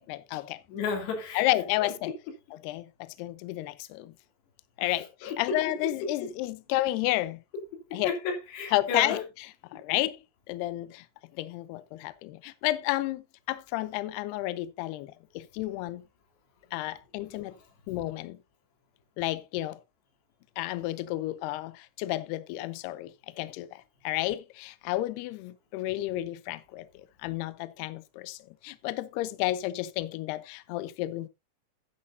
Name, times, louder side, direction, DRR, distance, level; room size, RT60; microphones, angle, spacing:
voice 1, 0.1-0.6 1.4-2.1 2.6-4.1 4.8-7.4 7.9-8.2 8.7-9.2 9.8-10.2 10.5-11.1 11.4-16.0 16.7-17.6 17.9-18.4 19.2-19.8 20.6-26.9 27.2-28.4 28.6-31.3, left 17 dB, 90° left, 2.3 m, -31 dB
voice 2, 0.7-2.3 4.8-6.3 7.5-9.2 17.5-17.6, left 4 dB, 65° left, 4.8 m, -34 dB
11.5 x 10.0 x 2.7 m
omnidirectional pair, 5.5 m